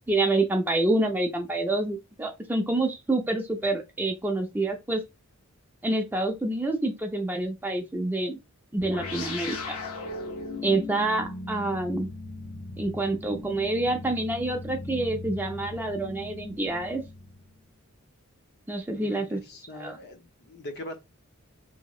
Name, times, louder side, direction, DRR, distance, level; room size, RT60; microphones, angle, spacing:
voice 1, 0.1-5.0 5.8-8.4 8.7-9.8 10.6-12.1 12.8-17.0 18.7-19.4 19.7-20.0, right 2 dB, 10° right, 0.4 m, -27 dB
sound 1, 8.8-17.6, left 3 dB, 90° left, 0.7 m, -38 dB
voice 2, 18.9-21.0, left 1 dB, 50° left, 0.7 m, -42 dB
3.1 x 2.8 x 2.3 m
head